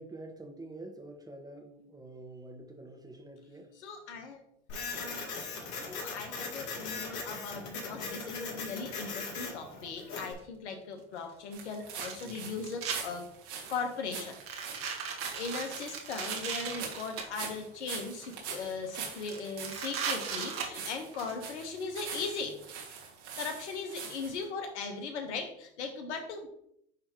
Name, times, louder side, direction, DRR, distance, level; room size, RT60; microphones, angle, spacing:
voice 1, 0.0-3.8 12.2-12.7, right 2 dB, 10° right, 3 dB, 1.4 m, -47 dB
voice 2, 3.8-4.4 5.0-5.3 5.7-13.3 13.7-14.4 15.1-22.6 23.4-26.5, left 4 dB, 85° left, 4 dB, 1.3 m, -38 dB
Printer, 4.7-10.3, left 4 dB, 60° left, 2.1 m, -39 dB
sound 1, 10.4-10.5 11.7-13.0 13.5-13.8 14.3-17.2 18.0-18.6 18.9-19.0 19.3-21.3, right 6 dB, 40° right, 1.5 m, -37 dB
sound 2, 11.5-24.4, right 6 dB, 80° right, 2.2 m, -43 dB
10.0 x 3.5 x 3.1 m, 0.72 s
hypercardioid pair, 95°, 34 cm